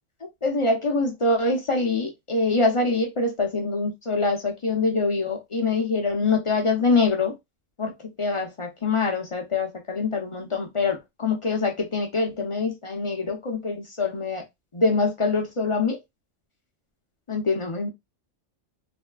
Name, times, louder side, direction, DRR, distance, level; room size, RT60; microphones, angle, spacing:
voice 1, 0.4-7.3 7.8-7.9 8.2-14.4 14.7-16.0 17.3-17.9, left 3 dB, 40° left, 0.4 m, -24 dB
3.3 x 2.6 x 2.2 m
omnidirectional pair, 1.3 m